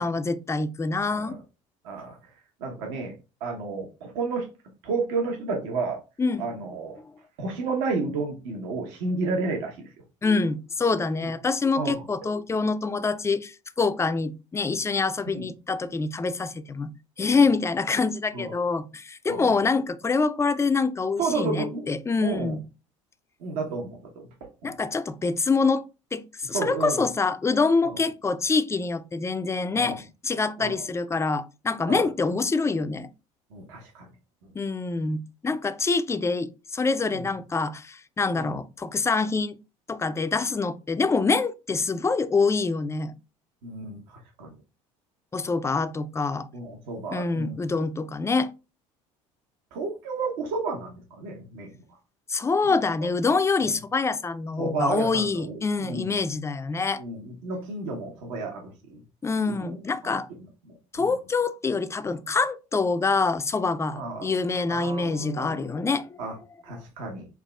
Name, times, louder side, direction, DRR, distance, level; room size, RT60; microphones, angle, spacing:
voice 1, 0.0-1.4 6.2-6.4 10.2-16.9 17.2-22.6 24.6-25.8 26.1-33.1 34.5-39.6 39.9-43.1 45.3-46.5 47.1-48.5 52.3-57.0 59.2-60.3 60.9-66.2, left 4 dB, 15° left, 0.4 m, -25 dB
voice 2, 1.8-2.3 2.6-3.1 3.4-4.5 4.8-6.0 6.4-7.0 7.4-9.9 11.8-12.0 15.3-15.5 18.3-18.5 19.3-19.5 21.2-21.9 22.2-22.6 23.4-24.3 24.6-24.8 26.5-27.0 27.8-28.0 29.7-30.0 30.6-30.8 31.9-32.1 33.5-34.1 34.4-34.5 37.1-37.2 38.3-38.6 43.6-44.5 46.5-47.6 49.7-51.8 52.7-53.1 54.6-56.2 57.0-59.0 59.5-61.1 63.9-64.3 64.7-65.7 66.2-66.3 66.6-67.3, right 3 dB, 70° right, 1.0 m, -32 dB
5.7 x 2.3 x 2.3 m
hypercardioid pair, 65°, 17 cm